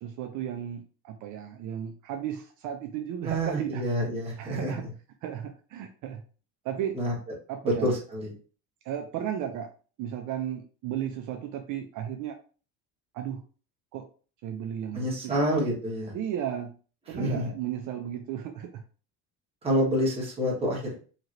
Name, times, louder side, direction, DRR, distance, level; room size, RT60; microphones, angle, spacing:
voice 1, 0.0-3.8 4.4-4.8 5.2-6.2 6.6-7.0 7.5-7.9 8.8-9.7 10.0-12.4 13.1-13.4 13.9-14.1 14.4-15.4 16.1-16.7 17.1-18.8, right 10 dB, 60° right, 5 dB, 0.5 m, -34 dB
voice 2, 3.2-4.7 6.9-7.1 7.6-8.3 14.9-16.1 17.1-17.5 19.6-20.9, equal, 15° right, -4 dB, 1.2 m, -27 dB
2.9 x 2.8 x 2.5 m, 0.38 s
cardioid pair, 150°, 34 cm